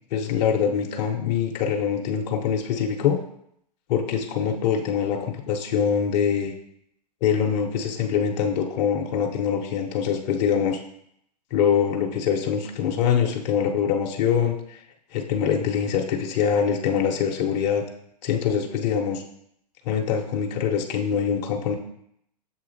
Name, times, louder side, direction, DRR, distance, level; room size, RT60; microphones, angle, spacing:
voice 1, 0.1-3.2 3.9-6.5 7.2-10.8 11.5-14.8 15.1-17.8 18.2-19.2 19.9-21.7, left 7 dB, 45° left, 2 dB, 0.5 m, -24 dB
7.0 x 2.8 x 2.6 m, 0.74 s
hypercardioid pair, 120°, 21 cm